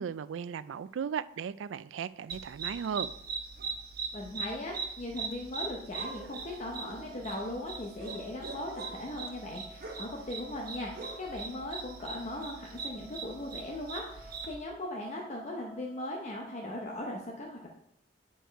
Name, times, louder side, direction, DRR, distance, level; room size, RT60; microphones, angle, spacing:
voice 1, 0.0-3.1, right 7 dB, 75° right, 0.3 m, -36 dB
sound 1, 2.3-14.5, right 5 dB, 55° right, 1.3 m, -41 dB
voice 2, 4.1-17.7, left 1 dB, 40° left, 0.8 m, -39 dB
sound 2, 6.7-17.0, equal, 20° left, 2.5 m, -55 dB
9.1 x 4.5 x 4.5 m
head